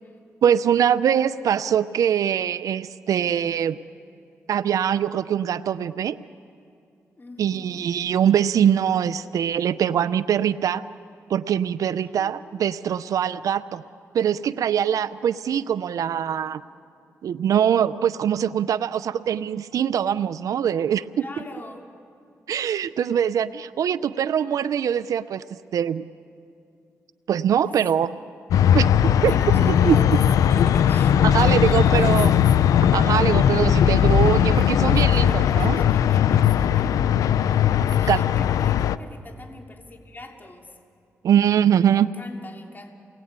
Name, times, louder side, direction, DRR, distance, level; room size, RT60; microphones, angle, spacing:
voice 1, 0.4-3.8 4.5-6.2 7.4-10.8 11.3-13.8 14.1-16.6 17.2-21.2 22.5-25.4 25.7-26.1 27.3-28.2 28.7-28.9 29.2-29.4 29.8-30.0 31.2-32.3 32.9-35.8 38.1-38.2 41.2-42.1, right 9 dB, 80° right, 16 dB, 0.6 m, -22 dB
voice 2, 7.2-7.8 12.0-12.4 14.9-15.1 21.2-21.9 27.6-27.7 29.2-30.1 30.4-32.5 34.5-37.0 38.0-40.8 41.9-42.9, left 2 dB, 35° left, 2 dB, 3.1 m, -41 dB
sound 1, 28.5-39.0, left 9 dB, 90° left, 0.5 m, -18 dB
29.5 x 21.0 x 8.9 m, 2.5 s
cardioid pair, 55°, 6 cm